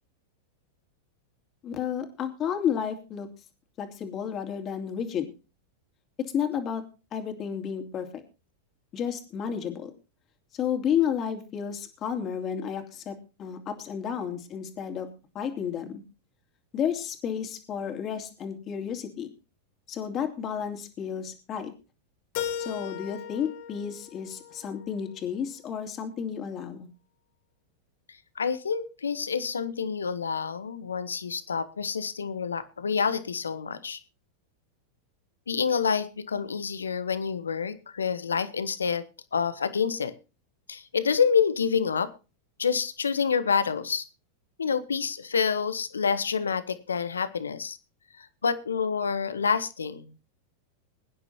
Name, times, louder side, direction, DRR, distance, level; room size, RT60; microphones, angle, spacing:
voice 1, 1.6-3.3 3.8-5.3 6.2-6.8 7.1-8.1 8.9-9.9 10.5-15.1 15.3-16.0 16.7-19.3 19.9-21.7 22.6-26.9, left 8 dB, 35° left, 5 dB, 2.9 m, -31 dB
Keyboard (musical), 22.3-25.2, left 9 dB, 55° left, 1.9 m, -37 dB
voice 2, 28.4-34.0 35.5-39.0 39.3-40.1 40.7-42.1 42.6-44.0 44.6-47.8 48.2-50.1, left 6 dB, 90° left, 14 dB, 1.0 m, -28 dB
22.5 x 9.9 x 2.9 m, 0.32 s
hypercardioid pair, 100°, 0 cm